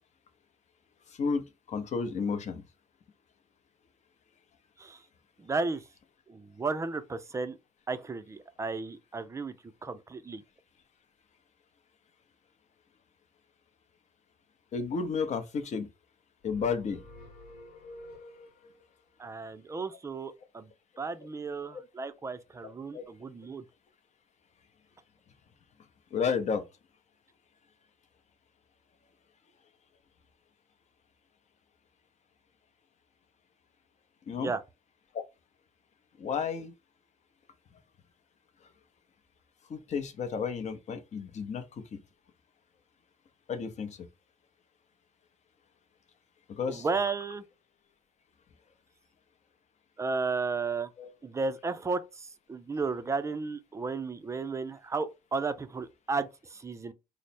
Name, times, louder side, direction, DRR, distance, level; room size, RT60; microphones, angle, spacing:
voice 1, 1.1-1.4 1.7-2.6 14.7-15.9 16.4-17.0 21.7-21.8 22.6-23.0 26.1-26.6 34.3-34.5 35.1-35.2 36.2-36.7 39.7-41.6 41.9-42.0 43.5-44.0 46.5-46.9 51.0-51.1, left 5 dB, 45° left, 0.7 m, -32 dB
voice 2, 5.4-5.8 6.3-7.6 7.9-9.5 9.8-10.4 19.2-20.7 21.0-23.6 34.4-34.6 46.7-47.4 50.0-50.9 51.2-56.9, right 4 dB, 15° right, 0.4 m, -34 dB
sound 1, 16.4-18.9, left 1 dB, 70° left, 1.1 m, -49 dB
3.2 x 2.1 x 4.2 m
cardioid pair, 110°, 17 cm